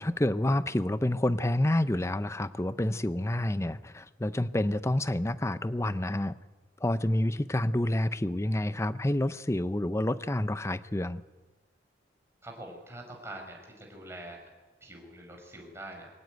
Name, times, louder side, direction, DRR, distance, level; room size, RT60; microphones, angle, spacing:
voice 1, 0.0-6.4 6.8-11.2, left 1 dB, 15° left, 14 dB, 0.6 m, -28 dB
voice 2, 12.4-14.4 14.8-16.1, right 1 dB, 15° right, 1 dB, 5.5 m, -44 dB
23.0 x 17.5 x 9.1 m, 1.2 s
head